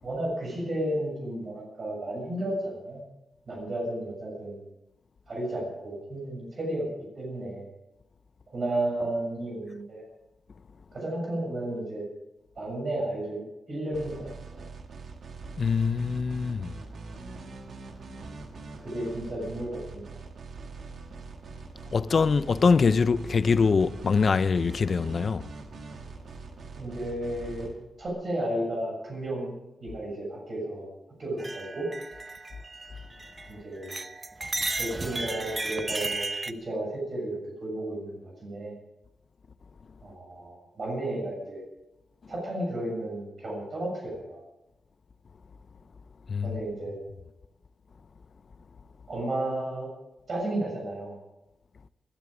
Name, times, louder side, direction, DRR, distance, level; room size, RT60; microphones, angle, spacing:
voice 1, 0.0-3.0 3.5-4.6 5.3-6.9 7.1-7.6 8.5-10.0 10.9-12.1 12.5-13.4 13.7-14.6 18.8-20.0 26.7-27.7 28.0-29.5 29.8-30.9 31.2-31.9 33.5-34.0 34.8-38.7 40.0-41.6 42.3-44.4 46.4-47.0 49.1-49.9 50.3-51.2, right 1 dB, 45° right, 6.8 m, -33 dB
sound 1, 13.9-28.1, right 4 dB, 65° right, 1.8 m, -43 dB
voice 2, 15.6-16.7 21.9-25.5 46.3-46.6, left 5 dB, 50° left, 0.6 m, -23 dB
sound 2, 31.4-33.5 33.8-36.5, right 3 dB, 25° right, 0.9 m, -34 dB
21.0 x 13.0 x 5.1 m
wide cardioid pair, 110°, 0 cm